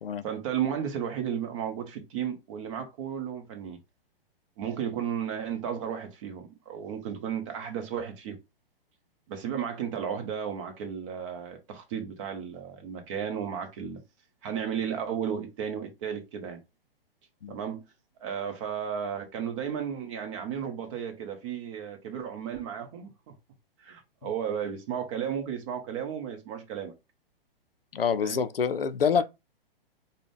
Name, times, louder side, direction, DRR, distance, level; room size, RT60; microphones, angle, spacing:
voice 1, 0.2-3.8 4.6-8.4 9.3-14.0 14.4-16.6 17.5-17.8 18.2-23.3 23.8-26.9 28.2-28.4 29.2-29.3, right 8 dB, 35° right, 0.9 m, -34 dB
voice 2, 27.9-29.2, left 6 dB, 75° left, 0.5 m, -26 dB
4.9 x 2.2 x 3.4 m
figure-of-eight pair, 115°, 29 cm